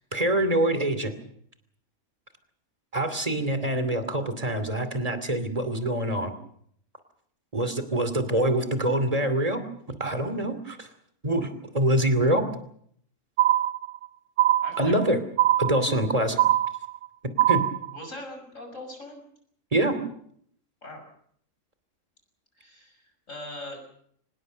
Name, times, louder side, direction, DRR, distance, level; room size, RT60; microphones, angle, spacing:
voice 1, 0.1-1.1 2.9-6.3 7.5-9.6 10.0-10.9 11.2-12.4 14.8-15.2 15.6-16.4 17.5-17.7 19.7-20.0, right 1 dB, 30° right, 9 dB, 2.7 m, -25 dB
sound 1, 13.4-14.1 14.4-15.1 15.4-16.1 16.4-17.1 17.4-18.1, right 13 dB, 70° right, 1.5 m, -22 dB
voice 2, 14.6-14.9 17.9-19.2 20.8-21.0 22.6-23.8, left 1 dB, 80° left, 5 dB, 6.7 m, -41 dB
25.0 x 20.0 x 6.7 m, 0.67 s
omnidirectional pair, 1.3 m